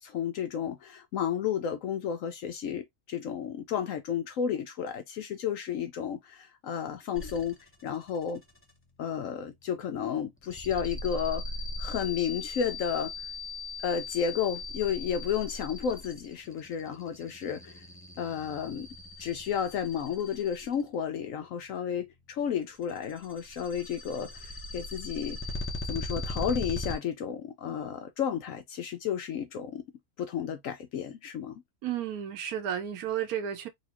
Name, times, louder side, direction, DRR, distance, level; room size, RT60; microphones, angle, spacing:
voice 1, 0.0-7.6 7.8-8.4 9.0-11.4 11.8-13.1 13.8-17.8 18.2-18.9 19.2-25.4 25.9-29.8 30.2-31.6, left 8 dB, 70° left, 1.0 m, -32 dB
sound 1, 7.1-7.7 8.1-8.6 10.4-20.9 22.8-27.0, left 2 dB, 10° left, 0.6 m, -39 dB
voice 2, 31.8-33.7, right 9 dB, 80° right, 1.3 m, -32 dB
4.1 x 2.4 x 2.9 m
omnidirectional pair, 1.5 m